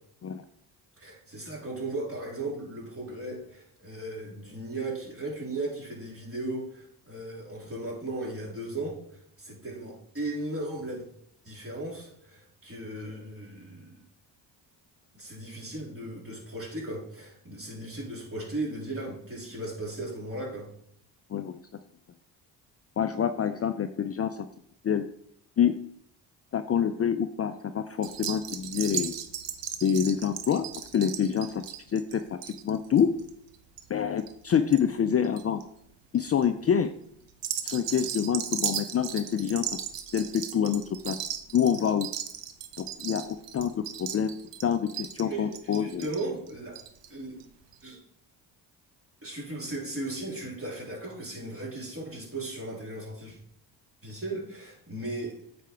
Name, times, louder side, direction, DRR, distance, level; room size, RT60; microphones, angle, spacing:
voice 1, 1.0-9.0 9.4-11.0 11.4-14.0 15.2-20.7 45.2-46.8 47.1-47.4 47.8-48.0 49.2-53.4 54.0-55.4, right 2 dB, 30° right, -3 dB, 3.6 m, -36 dB
voice 2, 23.0-24.5 24.8-25.0 25.6-25.7 26.5-29.2 29.8-30.7 30.9-31.6 31.9-33.1 33.9-35.6 36.1-36.9 37.6-39.6 40.1-41.2 41.5-42.1 42.8-44.4 44.6-46.1, left 8 dB, 30° left, 9 dB, 0.5 m, -26 dB
sound 1, 28.0-34.8 35.1-35.6 36.1-36.5 37.3-47.1 47.4-47.5 47.7-47.8, right 10 dB, 65° right, 0.9 m, -36 dB
8.1 x 5.2 x 4.6 m, 0.69 s
supercardioid pair, 55°, 46 cm